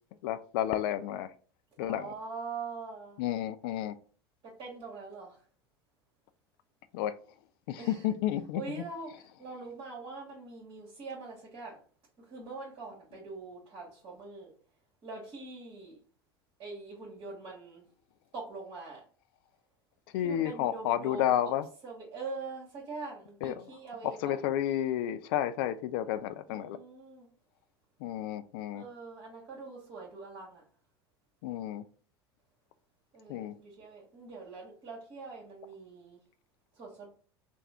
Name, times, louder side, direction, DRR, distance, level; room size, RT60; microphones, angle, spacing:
voice 1, 0.2-1.3 1.8-2.1 3.2-4.0 6.9-7.2 7.7-8.6 20.1-21.7 23.4-23.7 24.0-26.8 28.0-28.8 31.4-31.8 33.3-33.5, left 11 dB, 60° left, 11 dB, 0.4 m, -31 dB
voice 2, 1.8-3.2 4.4-5.4 7.8-8.1 8.5-11.8 12.2-14.5 15.0-16.0 16.6-17.8 18.3-19.0 20.2-21.5 21.8-24.3 26.5-27.3 28.7-30.6 33.1-36.2 36.7-37.1, right 4 dB, 40° right, -5 dB, 1.8 m, -43 dB
3.5 x 2.3 x 4.2 m, 0.41 s
hypercardioid pair, 80°, 14 cm